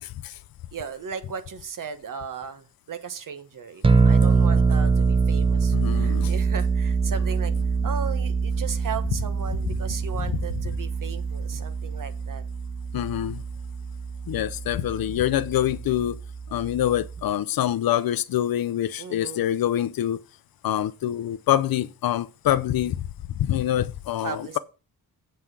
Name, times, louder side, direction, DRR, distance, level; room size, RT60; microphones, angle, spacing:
voice 1, 0.0-0.4 5.7-6.3 12.9-13.4 14.3-16.2 16.5-20.2 20.6-24.6, left 12 dB, 65° left, 0.6 m, -25 dB
voice 2, 0.7-7.5 7.8-12.4 19.0-19.5 24.2-24.6, right 6 dB, 55° right, 1.1 m, -36 dB
sound 1, 3.8-17.3, right 4 dB, 15° right, 0.5 m, -24 dB
8.0 x 5.8 x 6.1 m
wide cardioid pair, 165°, 38 cm